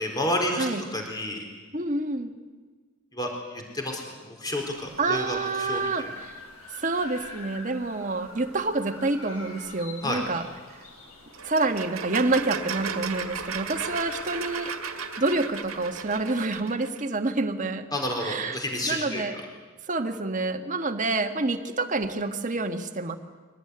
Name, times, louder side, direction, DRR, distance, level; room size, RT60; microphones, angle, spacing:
voice 1, 0.0-1.4 3.1-6.1 10.0-10.2 17.9-19.2, left 1 dB, 20° left, 2 dB, 4.3 m, -30 dB
voice 2, 1.7-2.3 5.0-6.3 6.7-10.5 11.4-14.7 15.2-17.9 18.2-18.6 18.9-19.4 19.9-23.2, right 3 dB, 35° right, 6 dB, 1.6 m, -28 dB
sound 1, 4.6-16.6, left 2 dB, 90° left, 7.4 m, -45 dB
sound 2, 11.3-17.0, right 6 dB, 70° right, 1.9 m, -35 dB
23.5 x 18.5 x 9.8 m, 1.4 s
head